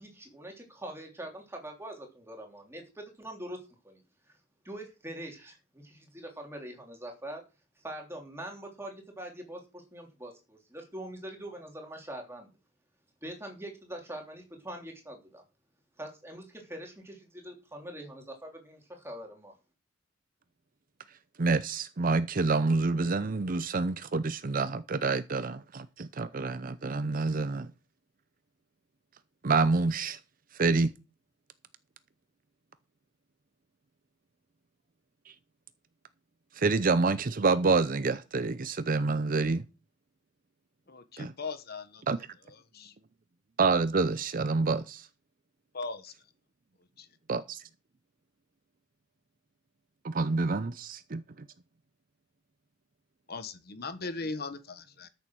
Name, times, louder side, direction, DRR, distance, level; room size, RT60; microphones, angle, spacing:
voice 1, 0.0-3.6 3.8-4.0 4.6-7.4 7.8-12.5 13.2-15.4 16.0-19.5, right 1 dB, 15° right, 3.3 m, -43 dB
voice 2, 21.4-27.7 29.4-30.2 30.5-30.9 35.3-35.4 36.5-39.6 41.2-41.3 42.1-42.2 43.6-45.1 47.3-47.6 50.0-51.2, right 3 dB, 45° right, 0.6 m, -27 dB
voice 3, 40.9-42.0 42.7-42.9 45.7-46.1 47.0-47.1 53.3-55.1, left 3 dB, 50° left, 1.3 m, -38 dB
13.5 x 7.1 x 6.2 m
head